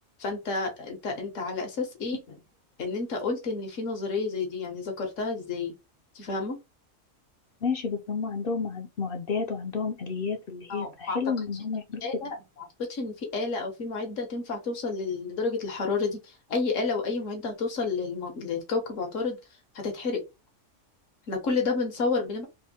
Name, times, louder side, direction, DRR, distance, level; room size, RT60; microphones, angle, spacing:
voice 1, 0.2-2.4 2.8-5.7 6.1-6.6 10.7-11.3 12.0-19.4 19.7-20.2 21.3-22.4, left 4 dB, 75° left, 1.5 m, -30 dB
voice 2, 7.6-12.0, left 5 dB, 55° left, 0.7 m, -31 dB
3.4 x 2.6 x 4.1 m
omnidirectional pair, 1.3 m